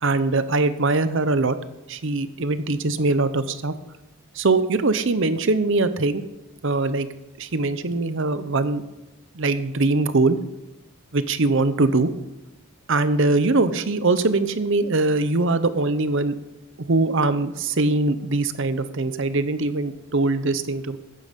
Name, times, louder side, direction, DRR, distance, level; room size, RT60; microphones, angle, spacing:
voice 1, 0.0-1.6 1.9-3.7 4.4-6.2 6.6-7.1 7.4-8.8 9.4-10.4 11.1-12.1 12.9-16.4 16.9-21.0, right 3 dB, 60° right, 12 dB, 0.8 m, -22 dB
14.5 x 9.7 x 5.2 m, 0.97 s
head